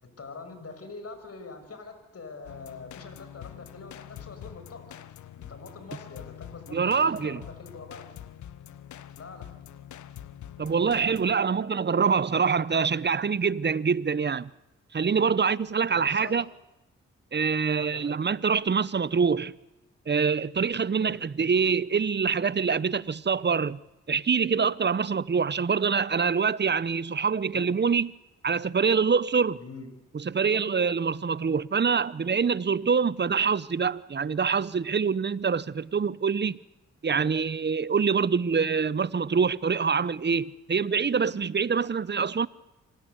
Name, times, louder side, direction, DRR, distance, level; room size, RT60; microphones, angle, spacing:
voice 1, 0.0-5.0 5.4-8.1 9.2-9.5 15.9-16.4 17.8-18.2 21.0-21.2 27.5-27.6 29.6-29.9, left 3 dB, 55° left, 6.4 m, -44 dB
sound 1, 2.4-11.4, left 11 dB, 80° left, 1.2 m, -45 dB
voice 2, 6.7-7.4 10.6-14.5 14.9-16.5 17.3-19.5 20.1-23.8 24.1-28.1 28.4-29.6 30.3-36.6 37.0-42.5, right 5 dB, 35° right, 0.9 m, -25 dB
26.5 x 18.5 x 8.2 m
supercardioid pair, 50°, 29 cm